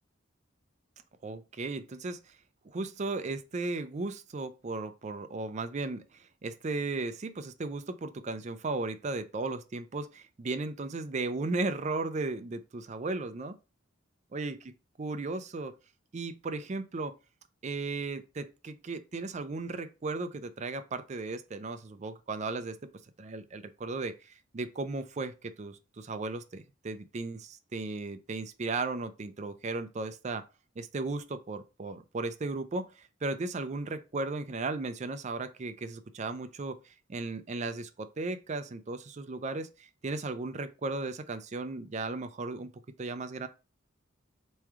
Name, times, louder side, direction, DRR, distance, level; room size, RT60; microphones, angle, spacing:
voice 1, 1.2-2.4 2.6-13.5 14.3-14.7 15.0-15.7 16.1-17.1 17.6-22.8 23.2-30.4 30.8-42.7 43.0-43.5, right 3 dB, 35° right, 0.5 m, -36 dB
3.6 x 3.2 x 4.6 m
head